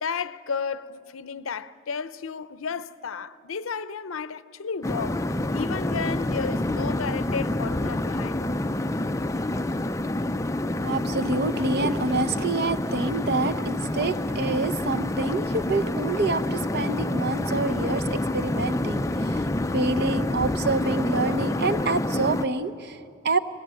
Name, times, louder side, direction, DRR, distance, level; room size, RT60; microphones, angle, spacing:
voice 1, 0.0-5.2 5.5-8.5, left 5 dB, 80° left, 0.6 m, -33 dB
sound 1, 4.8-22.4, left 1 dB, 15° left, 0.4 m, -27 dB
voice 2, 10.8-23.4, right 3 dB, 55° right, 0.8 m, -27 dB
21.5 x 19.5 x 8.7 m
head